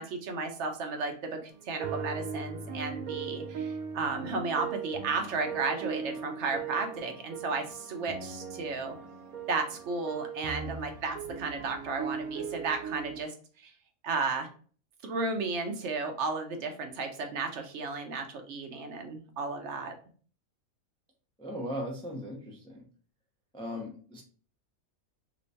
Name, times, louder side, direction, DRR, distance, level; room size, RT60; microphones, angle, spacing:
voice 1, 0.0-8.9 9.5-13.3 13.6-13.7 14.0-14.5 15.0-19.9, right 4 dB, 65° right, 5 dB, 0.9 m, -33 dB
sound 1, 1.5-13.2, right 6 dB, 85° right, 1.0 m, -39 dB
voice 2, 21.4-22.8 23.5-24.2, equal, 5° left, -1 dB, 0.4 m, -38 dB
3.2 x 3.0 x 2.7 m, 0.43 s
omnidirectional pair, 1.5 m